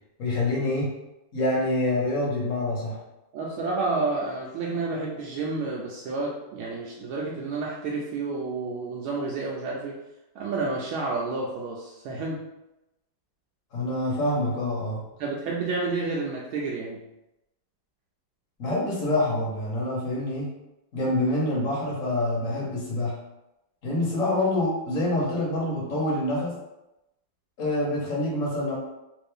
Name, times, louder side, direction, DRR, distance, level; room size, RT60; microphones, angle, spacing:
voice 1, 0.2-0.9 1.3-3.0 13.7-15.0 18.6-20.5 20.9-23.2 23.8-26.5 27.6-28.7, left 1 dB, 45° left, -5 dB, 1.4 m, -26 dB
voice 2, 3.3-10.0 10.3-12.4 15.2-17.0, right 3 dB, 80° right, -3 dB, 1.4 m, -30 dB
3.8 x 2.6 x 3.4 m, 0.93 s
omnidirectional pair, 2.4 m